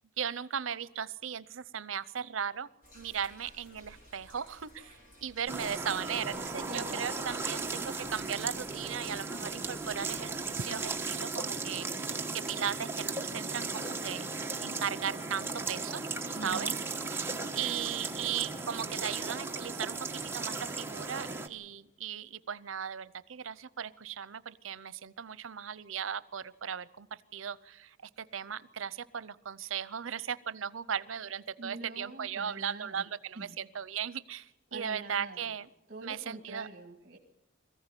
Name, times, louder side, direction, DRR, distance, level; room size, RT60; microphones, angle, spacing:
voice 1, 0.2-2.7 2.9-14.3 14.6-16.0 16.4-16.7 17.1-35.7 36.0-36.7, right 8 dB, 85° right, 17 dB, 0.7 m, -37 dB
sound 1, 2.8-11.1, equal, 45° left, 5.0 m, -57 dB
sound 2, 5.5-21.5, right 3 dB, 10° right, 1.1 m, -36 dB
voice 2, 6.7-7.0 16.4-16.8 31.6-33.1 33.3-33.6 34.7-35.5 35.9-37.2, right 2 dB, 50° right, 3 dB, 2.0 m, -44 dB
22.0 x 15.0 x 9.8 m, 0.93 s
head